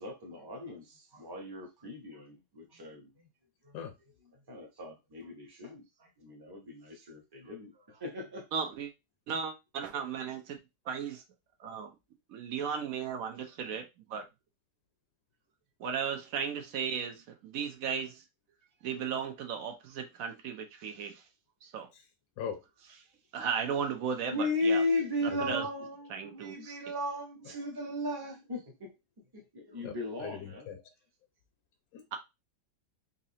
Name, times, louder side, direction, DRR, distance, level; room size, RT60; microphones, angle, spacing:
voice 1, 0.0-3.3 3.6-3.8 4.3-8.5 24.2-28.9 29.3-30.7, left 2 dB, 20° right, 0.6 m, -36 dB
voice 2, 8.5-8.9 9.3-10.6 10.9-11.2 11.6-11.9 12.3-13.8 14.1-14.2 15.8-18.2 18.8-21.2 21.6-21.9 23.3-24.8 25.5-25.6 26.1-26.8, right 7 dB, 65° right, 0.9 m, -35 dB
voice 3, 29.8-30.8 31.9-32.2, left 8 dB, 65° left, 0.9 m, -41 dB
4.0 x 2.6 x 2.7 m
omnidirectional pair, 1.9 m